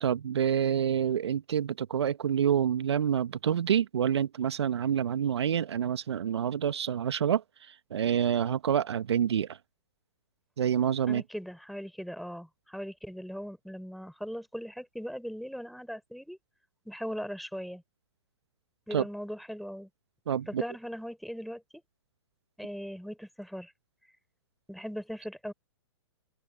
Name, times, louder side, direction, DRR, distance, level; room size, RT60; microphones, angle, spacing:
voice 1, 0.0-7.4 7.9-9.5 10.6-11.2 18.9-19.0 20.3-20.6, right 9 dB, 65° right, 1.2 m, -27 dB
voice 2, 11.1-16.4 16.8-17.8 18.9-19.9 20.5-21.6 22.6-23.7 24.7-25.5, equal, ahead, 4.6 m, -39 dB
open air
hypercardioid pair, 120°, 15 cm